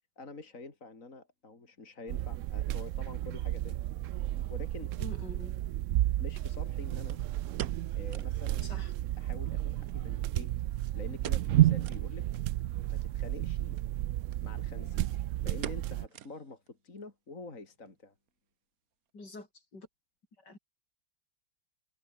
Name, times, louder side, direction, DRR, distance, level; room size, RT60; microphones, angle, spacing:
voice 1, 0.2-3.8 4.5-4.9 6.1-7.2 8.0-10.5 10.9-12.3 12.9-13.8 14.4-18.1, left 3 dB, 45° left, 3.7 m, -47 dB
sound 1, 2.1-16.1, right 14 dB, 90° right, 0.6 m, -32 dB
voice 2, 5.0-5.6 8.6-8.9 19.1-19.5 19.7-19.9 20.4-20.6, left 2 dB, 70° left, 6.4 m, -46 dB
sound 2, 7.1-8.4 8.7-8.8 9.1-9.2 9.9-10.7 11.2-11.6 11.8-12.1 12.6-12.7 13.7-13.9 14.3-14.4 14.7-15.1 15.6-16.7 17.0-17.1 17.7-18.0 18.3-18.4, right 11 dB, 60° right, 1.2 m, -44 dB
omnidirectional pair, 1.9 m